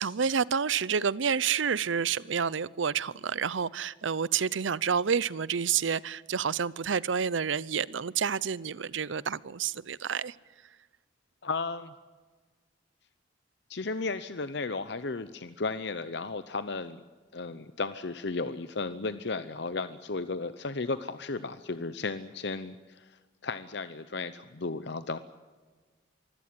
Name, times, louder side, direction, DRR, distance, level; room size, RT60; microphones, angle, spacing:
voice 1, 0.0-10.3, right 6 dB, 80° right, 0.7 m, -29 dB
voice 2, 11.4-11.9 13.7-17.0 17.3-25.2, left 3 dB, 60° left, 0.8 m, -34 dB
24.5 x 16.0 x 9.6 m
head